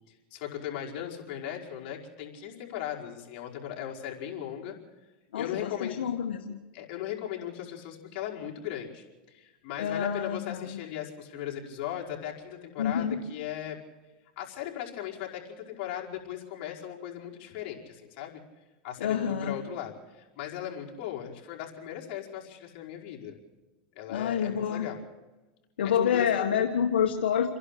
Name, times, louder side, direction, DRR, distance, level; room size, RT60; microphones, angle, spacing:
voice 1, 0.1-4.8 5.3-6.0 6.7-13.8 14.4-18.4 18.8-23.4 24.0-25.0 26.0-26.6, left 10 dB, 55° left, -1 dB, 5.2 m, -38 dB
voice 2, 5.3-6.6 9.8-10.8 12.8-13.2 19.0-19.6 24.1-24.9 25.8-27.6, left 8 dB, 90° left, 3 dB, 1.7 m, -28 dB
29.0 x 11.5 x 8.6 m, 1.1 s
supercardioid pair, 125°, 6 cm